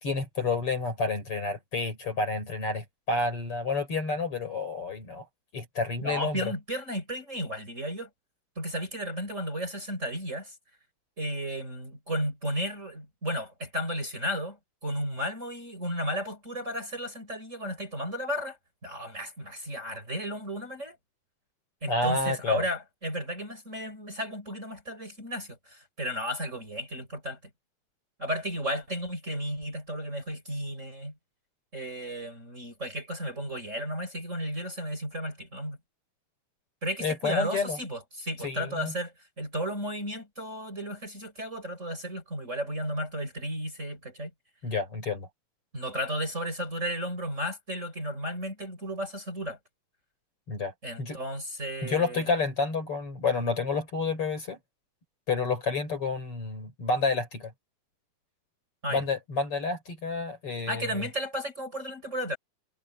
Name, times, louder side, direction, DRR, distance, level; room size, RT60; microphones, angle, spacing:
voice 1, 0.0-5.2 5.5-6.4 21.9-22.6 37.0-37.8 38.4-38.9 44.6-45.3 50.5-50.7 51.0-51.2 51.8-54.6 55.3-57.5 58.9-61.1, left 4 dB, 35° left, 5.0 m, -29 dB
voice 2, 6.0-8.1 8.6-10.5 11.2-14.6 14.8-18.6 18.8-21.0 21.8-27.4 28.2-31.1 31.7-35.8 36.8-44.3 45.7-49.6 50.8-52.2 58.8-59.0 60.7-62.4, equal, 20° right, 4.9 m, -34 dB
omnidirectional pair, 4.4 m